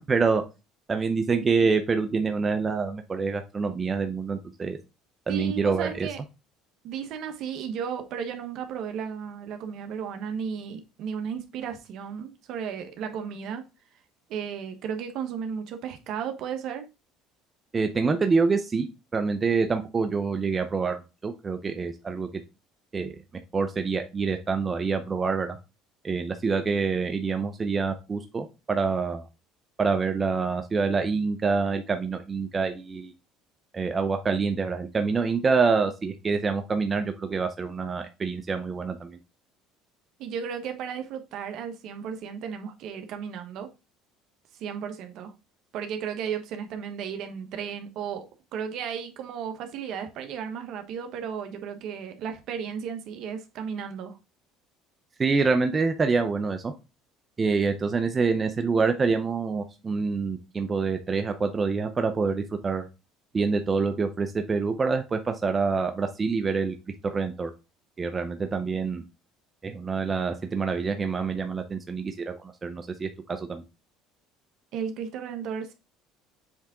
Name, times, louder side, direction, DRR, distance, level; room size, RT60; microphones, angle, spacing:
voice 1, 0.1-0.4 0.9-4.8 5.3-6.1 17.7-18.9 19.1-22.3 22.9-23.2 23.5-25.6 26.0-29.3 29.8-33.1 33.7-39.2 55.2-56.7 57.4-62.9 63.3-66.7 67.0-67.5 68.0-69.0 69.6-73.6, right 4 dB, 25° right, 0.7 m, -26 dB
voice 2, 5.3-6.2 6.8-13.6 14.3-16.9 40.2-43.7 44.6-45.3 45.7-48.3 48.5-54.2 74.7-75.7, right 7 dB, 60° right, 1.1 m, -34 dB
7.3 x 3.5 x 3.7 m
supercardioid pair, 105°, 0 cm